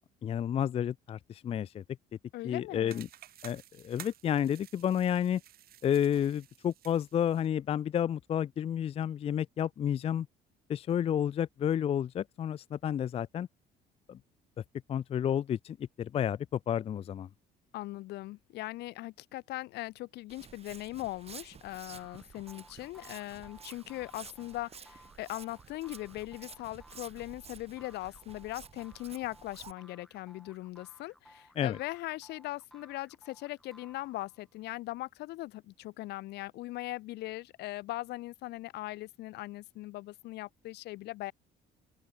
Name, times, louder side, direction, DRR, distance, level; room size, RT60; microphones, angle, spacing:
voice 1, 0.2-1.8 2.4-3.1 3.4-5.4 5.8-10.3 10.7-13.5 14.1-14.2 14.9-17.3 31.6-31.8, left 9 dB, 35° left, 0.4 m, -31 dB
voice 2, 2.3-3.1 17.7-41.3, left 18 dB, 80° left, 2.0 m, -40 dB
sound 1, 2.9-7.5, right 13 dB, 65° right, 2.2 m, -53 dB
Walk footsteps, 20.3-29.7, right 6 dB, 35° right, 4.5 m, -52 dB
sound 2, 22.0-34.5, equal, ahead, 3.1 m, -59 dB
open air
cardioid pair, 110°, 17 cm